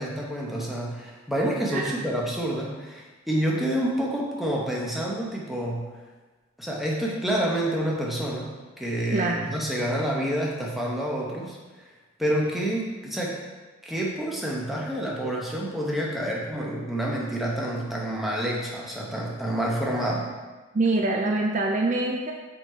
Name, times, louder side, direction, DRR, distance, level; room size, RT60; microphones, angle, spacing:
voice 1, 0.0-5.9 6.6-11.6 12.2-13.4 13.8-20.3, right 1 dB, ahead, -3 dB, 0.8 m, -28 dB
voice 2, 9.1-9.5 20.7-22.3, right 2 dB, 40° right, 1 dB, 0.4 m, -24 dB
5.8 x 3.8 x 4.3 m, 1.3 s
head